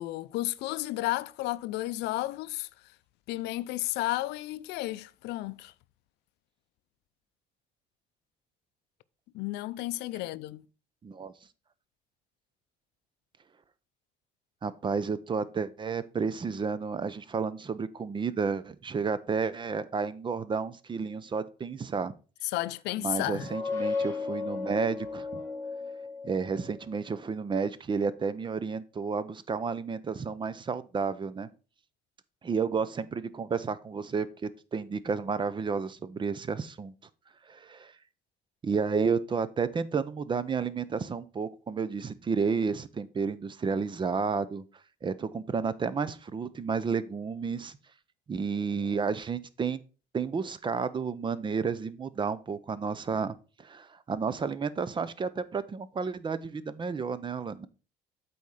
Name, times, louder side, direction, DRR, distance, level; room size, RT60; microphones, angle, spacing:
voice 1, 0.0-2.7 3.3-5.7 9.3-10.7 22.4-23.5, left 17 dB, 85° left, 0.5 m, -32 dB
voice 2, 11.0-11.3 14.6-22.1 23.0-25.4 26.2-31.5 32.4-36.9 37.5-37.9 38.6-44.6 45.0-47.8 48.3-49.8 50.1-57.7, right 5 dB, 30° right, 0.6 m, -31 dB
sound 1, 23.3-26.8, left 4 dB, 20° left, 2.2 m, -35 dB
8.2 x 4.3 x 4.9 m
cardioid pair, 110°, 17 cm